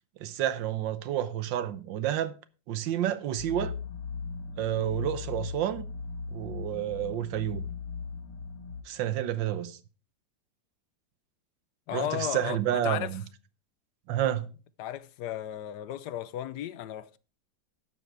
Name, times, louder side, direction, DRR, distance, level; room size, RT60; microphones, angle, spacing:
voice 1, 0.2-2.3 2.7-3.7 4.6-5.8 6.3-7.7 8.8-9.8 11.9-13.2 14.1-14.5, right 11 dB, 80° right, 1.5 m, -30 dB
sound 1, 3.4-8.8, left 5 dB, 85° left, 2.2 m, -38 dB
voice 2, 11.9-13.1 14.8-17.2, left 12 dB, 70° left, 1.1 m, -35 dB
12.0 x 7.4 x 4.6 m
omnidirectional pair, 2.0 m